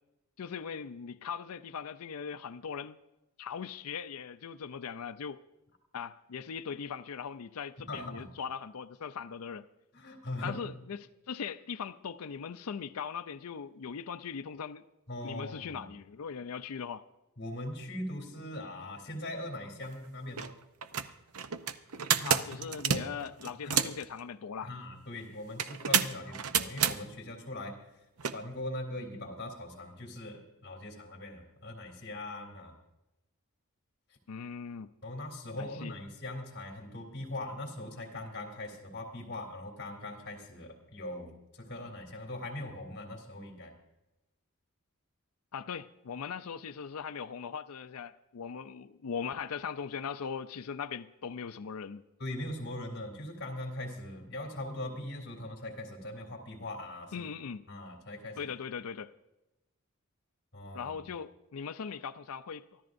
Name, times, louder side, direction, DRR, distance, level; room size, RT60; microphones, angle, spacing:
voice 1, 0.4-3.0 3.4-5.4 5.9-9.7 10.4-14.8 15.2-17.1 22.2-24.7 34.3-34.9 35.6-35.9 45.5-52.0 57.1-57.6 58.4-59.1 60.7-62.8, left 6 dB, 75° left, 0.5 m, -40 dB
voice 2, 7.9-8.3 9.9-10.6 15.1-15.9 17.4-20.5 22.2-22.3 22.6-23.1 23.6-23.9 24.6-27.7 28.3-32.7 35.0-43.7 52.2-57.3 57.7-58.5 60.5-61.1, left 1 dB, 45° left, 3.1 m, -41 dB
Opening Antique Trunk - More Latches, 19.8-19.9 20.3-20.5 20.8-24.0 25.6-27.0 28.2-28.3, right 8 dB, 75° right, 0.7 m, -29 dB
24.5 x 14.0 x 2.6 m
head